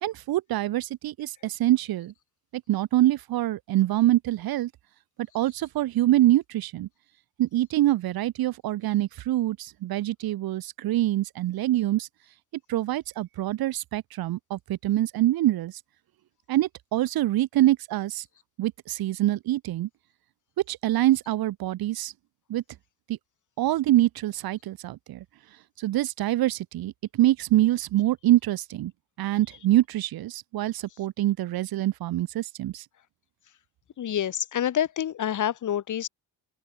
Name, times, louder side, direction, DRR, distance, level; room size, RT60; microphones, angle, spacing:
voice 1, 0.0-2.1 2.5-4.7 5.3-6.9 7.4-12.1 12.7-15.7 16.5-18.2 18.6-19.9 20.7-22.1 22.5-22.6 23.6-25.2 25.8-28.9 29.2-32.8, right 14 dB, 90° right, 2.1 m, -25 dB
voice 2, 34.0-36.1, left 10 dB, 55° left, 4.3 m, -27 dB
open air
cardioid pair, 150°, 35 cm